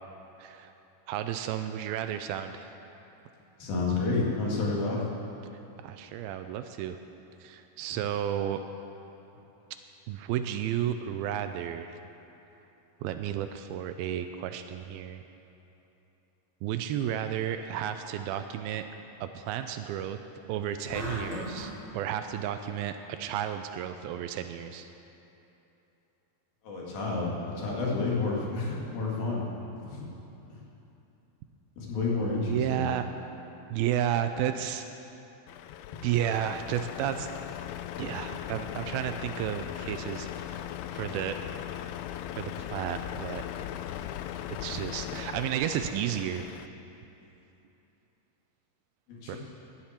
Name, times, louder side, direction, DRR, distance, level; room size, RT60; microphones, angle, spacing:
voice 1, 0.4-0.7 1.1-2.7 5.8-7.0 7.4-8.6 10.1-12.0 13.0-15.2 16.6-18.8 19.2-20.2 20.5-24.9 32.5-33.0 33.7-34.9 36.0-37.3 38.0-41.4 42.4-43.4 43.9-44.1 44.6-46.6 49.3-49.4, right 10 dB, 80° right, 8 dB, 2.3 m, -32 dB
voice 2, 3.6-5.0 26.6-29.5 29.9-30.1 31.8-32.8 49.1-49.4, left 3 dB, 70° left, -4 dB, 3.9 m, -30 dB
sound 1, 20.9-21.7, left 1 dB, 25° left, 3.6 m, -36 dB
Truck, 35.5-46.7, left 11 dB, 85° left, 2.5 m, -38 dB
17.0 x 12.0 x 4.3 m, 3.0 s
omnidirectional pair, 4.5 m